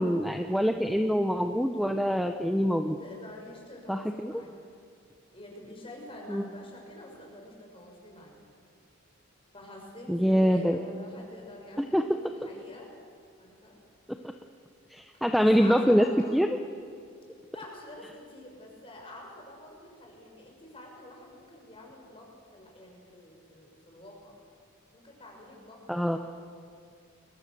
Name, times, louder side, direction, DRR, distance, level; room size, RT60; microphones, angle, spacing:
voice 1, 0.0-3.0 3.9-4.3 6.3-6.4 10.1-10.8 11.8-12.0 14.9-16.1 16.3-16.5 25.9-26.2, equal, ahead, 6 dB, 0.7 m, -24 dB
voice 2, 3.0-4.6 5.3-8.4 9.5-13.0 13.4-13.8 15.1-16.4 17.5-24.4 24.9-26.2, left 1 dB, 25° left, 0 dB, 6.0 m, -47 dB
30.0 x 22.5 x 6.8 m, 2.4 s
head